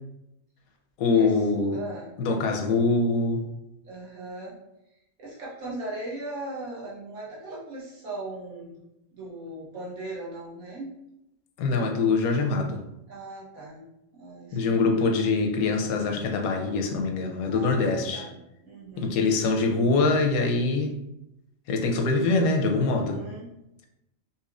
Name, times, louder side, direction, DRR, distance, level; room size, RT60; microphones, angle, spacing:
voice 1, 1.0-1.8 2.2-3.4 11.6-12.8 14.5-18.2 19.0-20.9 21.7-23.2, left 3 dB, 85° left, 4 dB, 1.0 m, -24 dB
voice 2, 1.7-2.1 3.8-4.6 5.2-8.7 9.1-10.9 13.1-13.8 14.1-15.1 17.5-19.2 22.9-23.5, right 2 dB, 75° right, -6 dB, 1.6 m, -38 dB
4.1 x 2.7 x 2.4 m, 0.86 s
omnidirectional pair, 1.5 m